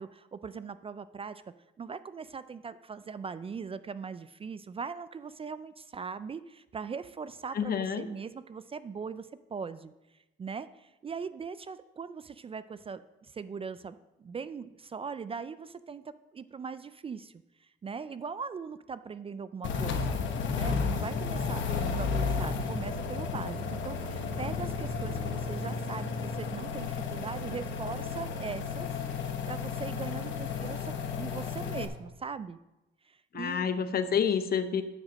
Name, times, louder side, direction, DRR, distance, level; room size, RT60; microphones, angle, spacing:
voice 1, 0.0-1.4 1.8-9.9 10.4-16.0 16.3-17.3 17.6-20.1 20.5-32.6 33.0-33.7, right 5 dB, 30° right, 14 dB, 0.3 m, -40 dB
voice 2, 7.5-8.1 33.3-34.8, left 7 dB, 50° left, 11 dB, 0.8 m, -28 dB
sound 1, 19.6-31.9, left 5 dB, 70° left, 1.1 m, -33 dB
9.6 x 5.0 x 6.3 m, 1.0 s
cardioid pair, 90°, 20 cm